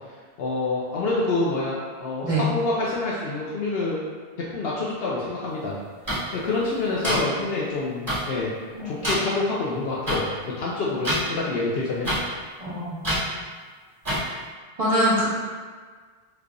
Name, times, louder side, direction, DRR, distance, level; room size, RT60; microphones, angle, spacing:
voice 1, 0.4-4.0 4.4-5.8 6.3-8.5 8.8-12.1, left 3 dB, 70° left, -5 dB, 0.8 m, -27 dB
sound 1, 6.1-6.2 7.0-7.2 8.1-8.2 9.0-9.1 10.1-10.2 11.0-11.2 12.0-12.2 13.0-13.2 14.0-14.2, equal, 20° right, 1.6 m, -24 dB
voice 2, 12.6-13.2 14.8-15.2, right 1 dB, 35° right, -10 dB, 1.2 m, -23 dB
3.3 x 3.3 x 2.5 m, 1.5 s
omnidirectional pair, 1.1 m